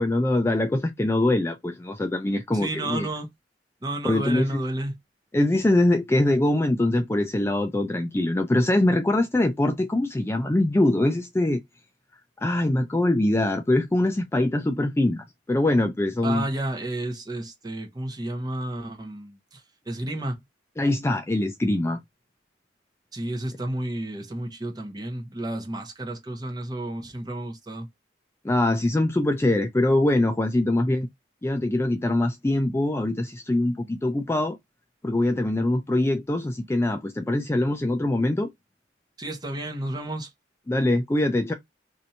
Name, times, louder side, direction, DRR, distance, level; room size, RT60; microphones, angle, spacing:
voice 1, 0.0-3.1 4.0-4.6 5.3-11.6 12.4-16.5 20.8-22.0 28.4-31.1 31.4-34.6 35.0-38.5 40.7-41.5, left 1 dB, 15° left, 0.3 m, -23 dB
voice 2, 2.5-3.3 3.8-5.0 16.2-20.4 23.1-27.9 39.2-40.3, right 1 dB, 20° right, 0.8 m, -31 dB
2.7 x 2.6 x 4.3 m
head